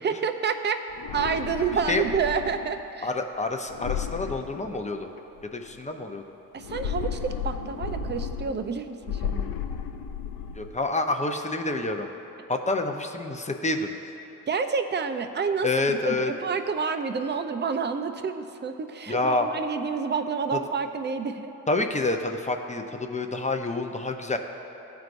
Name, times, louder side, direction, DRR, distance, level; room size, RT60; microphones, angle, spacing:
voice 1, 0.0-0.8 1.1-3.1 6.5-9.5 14.5-16.2 16.4-21.5, right 5 dB, 30° right, 8 dB, 0.5 m, -29 dB
sound 1, 0.9-2.8 3.7-5.2 6.6-8.7 9.0-10.7, left 7 dB, 80° left, 0.5 m, -33 dB
voice 2, 3.0-5.1 5.4-6.2 10.5-12.1 12.5-13.9 15.6-16.3 19.1-19.5 20.5-20.6 21.7-24.4, left 2 dB, 20° left, 4 dB, 0.7 m, -28 dB
14.0 x 4.7 x 2.6 m, 3.0 s
supercardioid pair, 50°, 37 cm